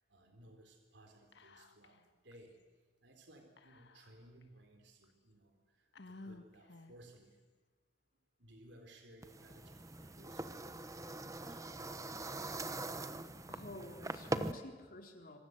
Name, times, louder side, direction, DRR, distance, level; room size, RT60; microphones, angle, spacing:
voice 1, 0.1-2.6 3.0-7.4 8.4-12.1, right 1 dB, 65° right, 4 dB, 4.1 m, -60 dB
Whispering, 1.3-2.0 2.3-2.4 3.6-4.4 5.0-5.1 5.9-7.1, left 2 dB, 65° left, 1.6 m, -55 dB
sound 1, 9.2-14.5, right 2 dB, 20° right, 1.1 m, -42 dB
voice 2, 13.5-15.4, left 1 dB, 50° left, 3 dB, 3.9 m, -50 dB
26.0 x 26.0 x 8.2 m, 1.4 s
head